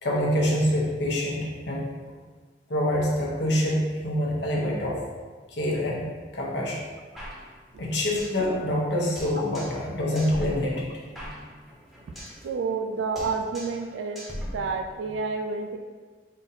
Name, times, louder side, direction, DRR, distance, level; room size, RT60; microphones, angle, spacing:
voice 1, 0.0-1.9 2.7-5.0 5.5-6.0 6.3-6.8 7.8-10.9, left 1 dB, 70° left, -4 dB, 0.8 m, -26 dB
sound 1, 7.2-8.4 8.7-8.8 9.2-9.9 10.2-12.4 12.7-12.9 13.2-13.9 14.2-15.2, equal, ahead, 0.8 m, -39 dB
voice 2, 12.4-14.2 14.5-15.8, right 4 dB, 90° right, 5 dB, 0.3 m, -29 dB
4.1 x 2.6 x 4.0 m, 1.4 s
head